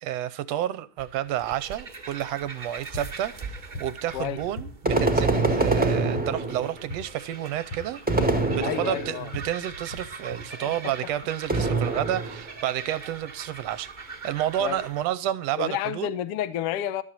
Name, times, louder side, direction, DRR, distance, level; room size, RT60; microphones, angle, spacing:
voice 1, 0.0-16.1, right 12 dB, 75° right, 1.7 m, -30 dB
sound 1, 1.0-15.1, right 4 dB, 45° right, 0.6 m, -42 dB
sound 2, 2.8-10.4, left 1 dB, 50° left, 3.7 m, -42 dB
sound 3, 4.8-6.8 8.1-9.3 11.5-12.5, right 3 dB, 5° right, 0.9 m, -24 dB
voice 2, 8.6-9.3 10.7-10.9 14.6-14.9 15.6-17.0, left 11 dB, 65° left, 1.5 m, -30 dB
14.0 x 12.5 x 4.2 m
omnidirectional pair, 3.4 m